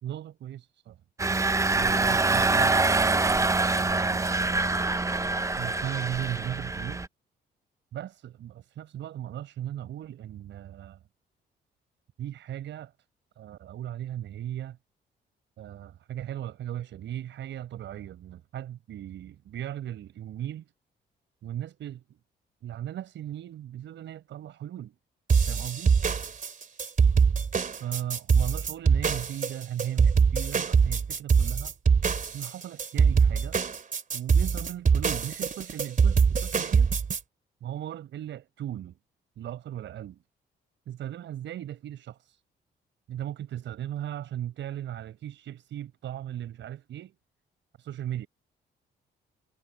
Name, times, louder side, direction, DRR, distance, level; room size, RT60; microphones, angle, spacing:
voice 1, 0.0-1.0 1.3-2.8 3.8-4.7 5.6-7.0 7.9-11.0 12.2-12.9 13.4-14.8 15.6-20.7 21.4-22.2 22.6-24.9 25.5-26.0 27.8-31.7 32.3-33.6 34.1-36.9 37.6-39.0 39.4-40.2 40.9-42.4 43.1-47.1 47.8-48.3, right 11 dB, 75° right, 5.7 m, -37 dB
Engine, 1.2-7.1, right 3 dB, 15° right, 0.7 m, -25 dB
sound 1, 25.3-37.2, right 6 dB, 45° right, 2.6 m, -23 dB
cardioid pair, 75°, 19 cm